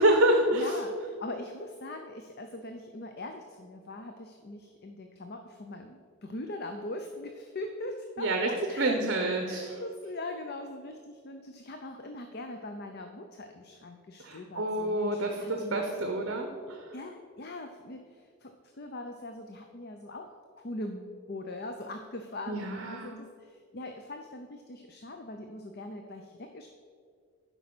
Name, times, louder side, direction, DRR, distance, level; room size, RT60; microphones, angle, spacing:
voice 1, 0.0-0.7 8.2-8.5 8.8-9.7 14.2-16.8 22.5-23.2, right 1 dB, 55° right, 3 dB, 0.9 m, -27 dB
voice 2, 0.5-16.2 16.9-26.7, left 2 dB, 45° left, 5 dB, 0.6 m, -41 dB
11.5 x 5.3 x 6.0 m, 2.1 s
head